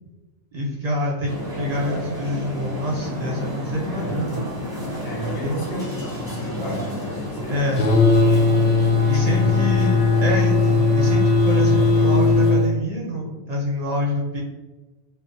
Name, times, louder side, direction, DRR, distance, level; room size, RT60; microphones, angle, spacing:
voice 1, 0.5-4.5 5.4-5.6 7.5-8.0 9.1-14.4, equal, 45° right, -3 dB, 0.6 m, -26 dB
sound 1, 1.2-12.5, left 1 dB, 5° right, 0.8 m, -31 dB
voice 2, 5.0-7.6 9.1-10.0, equal, 90° left, -2 dB, 1.1 m, -33 dB
sound 2, 7.8-12.7, left 3 dB, 70° left, 0.8 m, -18 dB
2.6 x 2.3 x 2.5 m, 1.2 s
omnidirectional pair, 1.1 m